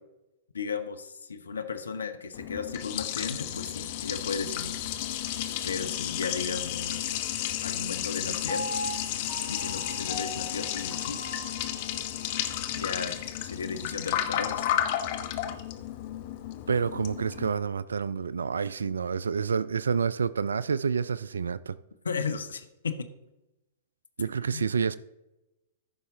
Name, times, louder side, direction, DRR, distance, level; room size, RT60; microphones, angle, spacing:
voice 1, 0.5-4.8 5.6-7.2 7.6-8.7 9.5-11.3 12.8-14.7 22.0-23.1 24.5-24.7, left 5 dB, 80° left, 0.8 m, -35 dB
Liquid, 2.3-17.5, left 11 dB, 50° left, 1.0 m, -32 dB
Piano, 8.5-12.6 13.1-13.2, equal, 15° left, 3.7 m, -39 dB
voice 2, 16.7-21.8 24.2-25.0, right 6 dB, 80° right, 0.3 m, -28 dB
14.5 x 5.7 x 3.7 m
figure-of-eight pair, 110°, 0 cm